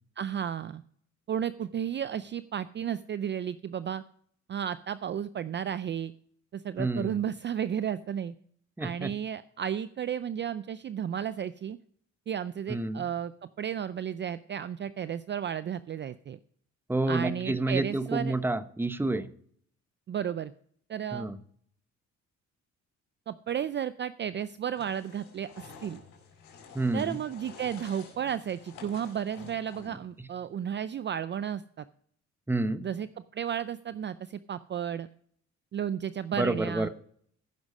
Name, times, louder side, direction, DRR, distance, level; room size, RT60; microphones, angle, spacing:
voice 1, 0.2-0.8 1.3-4.0 4.5-6.1 6.5-8.3 8.8-11.8 12.3-13.3 13.6-16.4 17.1-18.3 20.1-20.5 20.9-21.3 23.3-26.0 26.9-31.8 32.8-33.1 33.3-35.1 35.7-36.9, right 9 dB, 40° right, 14 dB, 0.4 m, -33 dB
voice 2, 6.8-7.2 8.8-9.1 12.7-13.0 16.9-19.3 21.1-21.4 26.7-27.2 32.5-32.8 36.4-36.9, right 2 dB, 5° right, 13 dB, 0.8 m, -29 dB
sound 1, 24.7-30.1, left 5 dB, 90° left, 4.4 m, -50 dB
14.5 x 6.2 x 5.4 m, 0.62 s
cardioid pair, 90°, 30 cm